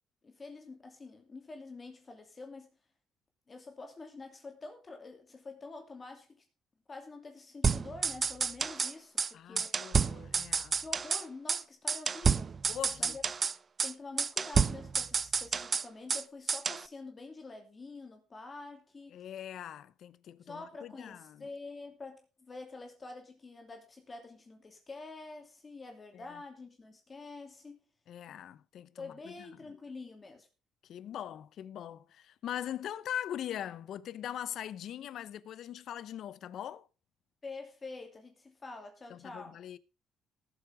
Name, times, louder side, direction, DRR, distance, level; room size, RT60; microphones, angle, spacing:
voice 1, 0.2-2.7 3.5-6.4 6.9-9.8 10.8-12.5 13.0-13.2 13.8-19.2 20.4-27.8 29.0-30.5 37.4-39.6, left 3 dB, 30° left, 2.7 m, -47 dB
sound 1, 7.6-8.9 9.2-9.3 9.6-11.2 11.5-11.6 11.9-13.5 13.8-13.9 14.2-16.2 16.5-16.8, right 5 dB, 35° right, 0.6 m, -30 dB
voice 2, 9.3-10.8 12.7-13.2 19.1-21.5 26.1-26.4 28.1-29.7 30.8-36.9 39.1-39.8, left 10 dB, 65° left, 0.8 m, -42 dB
18.5 x 8.0 x 3.5 m
cardioid pair, 110°, 0 cm